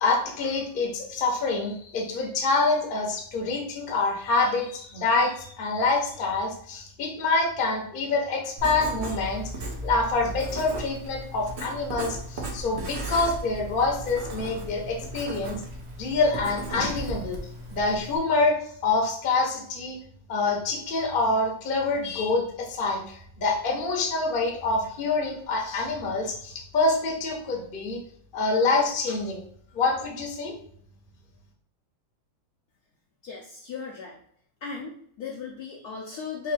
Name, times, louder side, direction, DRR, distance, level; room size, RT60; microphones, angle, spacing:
voice 1, 0.0-9.4 9.8-15.6 16.0-17.4 17.7-18.6 18.8-20.0 20.3-28.0 28.3-29.4 29.7-30.5, left 3 dB, 40° left, -1 dB, 0.8 m, -26 dB
Writing, 8.6-18.2, right 1 dB, 55° right, 0.8 m, -36 dB
voice 2, 33.2-34.2 34.6-36.5, left 5 dB, 65° left, -2 dB, 1.0 m, -35 dB
4.1 x 2.6 x 4.2 m, 0.63 s
omnidirectional pair, 2.1 m